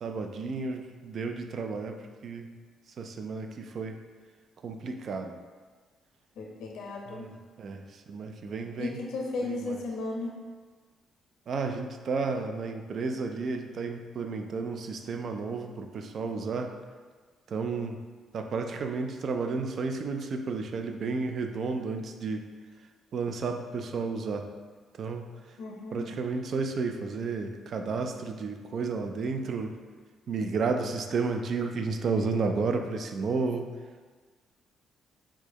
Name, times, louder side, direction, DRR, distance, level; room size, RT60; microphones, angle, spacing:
voice 1, 0.0-2.0 2.2-2.5 3.0-4.0 4.6-5.3 7.1-7.8 8.1-9.0 9.4-9.8 11.5-16.7 17.5-18.0 18.3-22.5 23.1-24.5 25.0-25.2 25.9-29.7 30.3-33.7, right 4 dB, 55° right, 5 dB, 0.3 m, -32 dB
voice 2, 6.4-7.3 8.8-10.3 25.6-26.1, left 2 dB, 80° left, -1 dB, 0.5 m, -35 dB
4.6 x 2.2 x 2.9 m, 1.5 s
cardioid pair, 90°, 0 cm